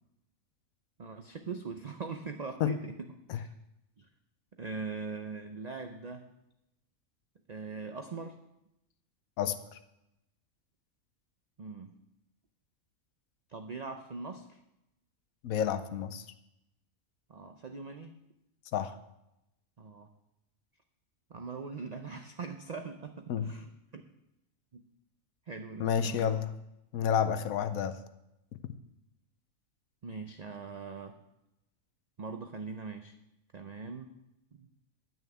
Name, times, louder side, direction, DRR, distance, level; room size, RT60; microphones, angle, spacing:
voice 1, 1.0-3.5 4.0-4.1 4.5-6.3 7.5-8.4 11.6-11.9 13.5-14.6 17.3-18.1 19.8-20.1 21.3-24.0 24.7-24.9 25.5-26.3 30.0-31.1 32.2-33.1 33.5-34.2 34.6-34.7, right 4 dB, 45° right, 6 dB, 0.5 m, -41 dB
voice 2, 9.4-9.8 15.4-16.2 18.7-18.9 23.3-23.5 25.8-26.5 26.9-28.0, left 8 dB, 85° left, 11 dB, 1.1 m, -30 dB
11.0 x 6.3 x 8.0 m, 0.88 s
omnidirectional pair, 1.4 m